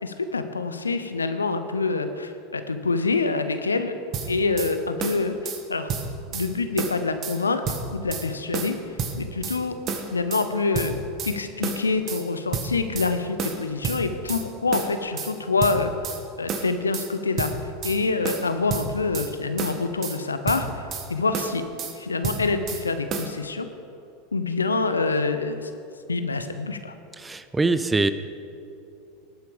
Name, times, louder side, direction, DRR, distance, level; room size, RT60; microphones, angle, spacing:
voice 1, 0.0-4.0 4.3-5.9 6.3-8.8 9.1-9.8 10.1-11.0 11.2-15.9 16.4-17.5 17.8-21.6 22.0-23.7 24.3-25.7 26.1-26.9, left 4 dB, 90° left, 9 dB, 0.8 m, -26 dB
sound 1, 4.1-4.7 5.0-5.6 5.9-6.5 6.8-7.4 7.7-8.3 8.5-9.6 9.9-10.5 10.7-11.4 11.6-12.2 12.5-13.1 13.4-14.4 14.7-15.3 15.6-16.2 16.5-17.1 17.4-18.0 18.2-19.3 19.6-20.2 20.5-21.1 21.3-21.9 22.2-22.8 23.1-23.3, right 5 dB, 40° right, 1.7 m, -30 dB
voice 2, 27.2-28.1, right 3 dB, 15° right, 13 dB, 0.6 m, -23 dB
18.0 x 9.3 x 5.1 m, 2.7 s
hypercardioid pair, 85°, 0 cm